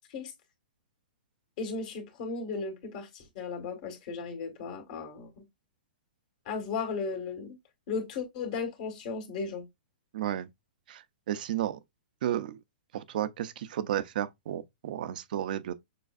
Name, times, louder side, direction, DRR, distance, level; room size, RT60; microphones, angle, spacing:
voice 1, 1.6-5.4 6.5-7.6 7.9-9.7, left 4 dB, 50° left, 1.9 m, -35 dB
voice 2, 10.1-10.5 10.9-11.8 12.2-12.6 12.9-15.7, right 11 dB, 65° right, 0.6 m, -32 dB
6.7 x 2.4 x 2.5 m
hypercardioid pair, 135°, 5 cm